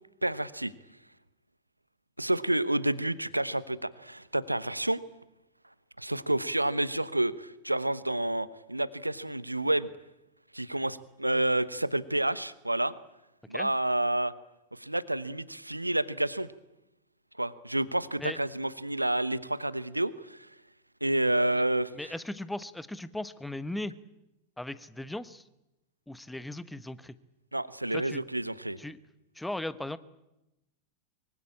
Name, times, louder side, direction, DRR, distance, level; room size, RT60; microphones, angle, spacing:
voice 1, 0.2-0.7 2.2-5.0 6.0-9.9 10.5-12.9 13.5-14.3 14.7-16.5 17.4-20.5 21.0-21.9 27.5-28.8, right 1 dB, 85° right, 17 dB, 1.1 m, -29 dB
voice 2, 21.9-23.9 24.6-25.4 26.1-27.1 27.9-28.2 28.8-29.0 29.3-30.0, left 1 dB, 5° left, 15 dB, 1.1 m, -37 dB
24.0 x 24.0 x 8.7 m, 0.94 s
figure-of-eight pair, 90°, 0 cm